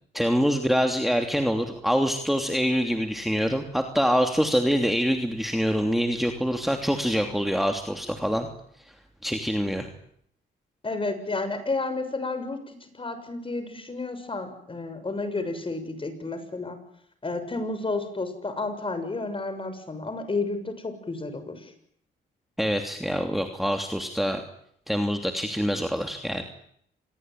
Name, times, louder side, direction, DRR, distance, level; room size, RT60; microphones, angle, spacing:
voice 1, 0.1-8.5 9.2-9.9 22.6-24.4 24.9-26.4, equal, ahead, 5 dB, 2.9 m, -25 dB
voice 2, 10.8-16.8 17.2-21.7, left 3 dB, 25° left, 9 dB, 6.7 m, -31 dB
27.0 x 21.0 x 9.3 m, 0.69 s
cardioid pair, 90°, 20 cm